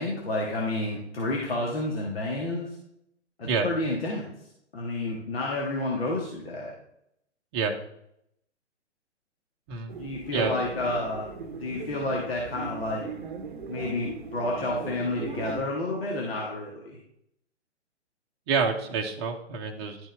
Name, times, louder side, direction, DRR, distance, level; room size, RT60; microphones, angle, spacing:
voice 1, 0.0-2.8 3.4-4.3 4.7-6.7 10.0-11.3 11.6-13.1 13.7-17.0, left 2 dB, 55° left, -2 dB, 1.8 m, -30 dB
sound 1, 9.9-15.6, right 4 dB, 45° right, 0.9 m, -39 dB
voice 2, 18.5-20.0, right 5 dB, 20° right, 2 dB, 0.8 m, -27 dB
11.5 x 5.3 x 3.4 m, 0.76 s
figure-of-eight pair, 125°, 35 cm